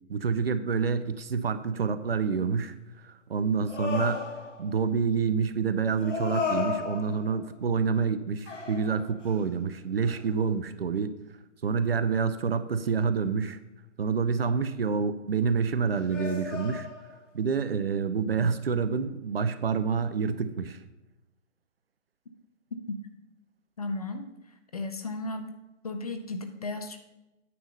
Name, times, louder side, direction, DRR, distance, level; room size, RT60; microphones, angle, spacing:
voice 1, 0.1-2.8 3.0-4.3 4.6-11.1 11.6-13.6 14.0-16.9 17.3-20.8, right 5 dB, 50° right, 12 dB, 0.6 m, -27 dB
sound 1, 3.7-4.8 6.0-7.5 8.5-9.5 10.0-10.2 16.1-17.3, left 5 dB, 70° left, 1.6 m, -34 dB
voice 2, 23.8-24.3 24.7-25.6 25.8-27.0, left 2 dB, 30° left, 7 dB, 0.5 m, -34 dB
9.4 x 3.7 x 6.7 m, 0.96 s
figure-of-eight pair, 145°, 38 cm